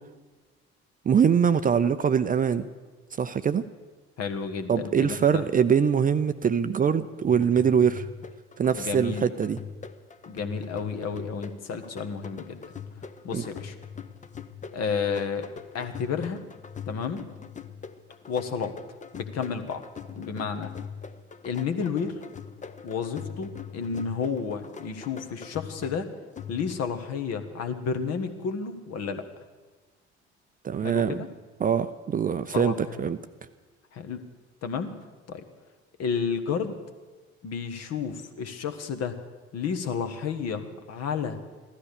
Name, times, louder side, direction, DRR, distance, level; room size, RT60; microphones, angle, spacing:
voice 1, 1.1-2.7 3.2-3.7 4.7-8.1 8.6-9.6 13.3-13.4 30.6-31.2 31.6-33.2, right 7 dB, 25° right, 12 dB, 0.6 m, -23 dB
voice 2, 4.2-5.4 8.7-9.3 10.3-12.6 13.2-13.8 14.7-15.5 15.7-16.4 16.9-17.3 18.3-18.8 19.1-19.8 20.1-20.7 21.4-22.2 22.8-26.1 26.5-29.3 30.8-31.3 32.5-32.8 33.0-33.1 33.9-34.2 34.6-34.9 35.3-35.4 36.0-36.8 37.4-39.2 39.5-41.4, left 6 dB, 50° left, 8 dB, 1.5 m, -31 dB
sound 1, 7.3-26.9, left 6 dB, 20° left, 0.9 m, -42 dB
16.0 x 13.5 x 6.7 m, 1.3 s
figure-of-eight pair, 50°, 33 cm